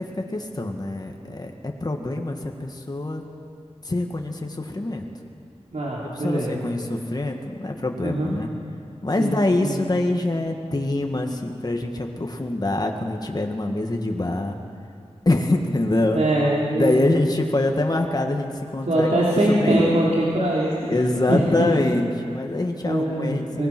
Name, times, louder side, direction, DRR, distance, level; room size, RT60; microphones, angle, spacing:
voice 1, 0.0-3.2 3.8-5.1 6.1-8.5 9.0-14.6 15.3-16.2 16.7-19.1 19.5-19.9 20.9-23.7, left 2 dB, 35° left, 3 dB, 1.8 m, -25 dB
voice 2, 5.7-6.6 8.0-8.3 9.2-9.4 9.6-9.8 16.2-16.9 18.9-21.0 21.3-21.7 22.8-23.7, right 1 dB, 85° right, -6 dB, 3.4 m, -22 dB
24.0 x 20.0 x 6.1 m, 2.3 s
wide cardioid pair, 85°, 11 cm